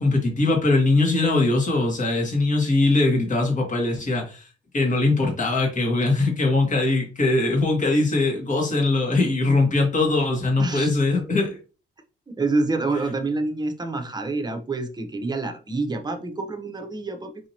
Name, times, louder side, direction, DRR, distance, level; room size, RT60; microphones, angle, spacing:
voice 1, 0.0-4.5 4.7-11.6, left 2 dB, 40° left, 1 dB, 1.8 m, -21 dB
voice 2, 10.6-10.9 12.4-17.5, right 3 dB, 20° right, 5 dB, 0.9 m, -27 dB
4.9 x 2.9 x 2.9 m, 0.34 s
cardioid pair, 90°, 20 cm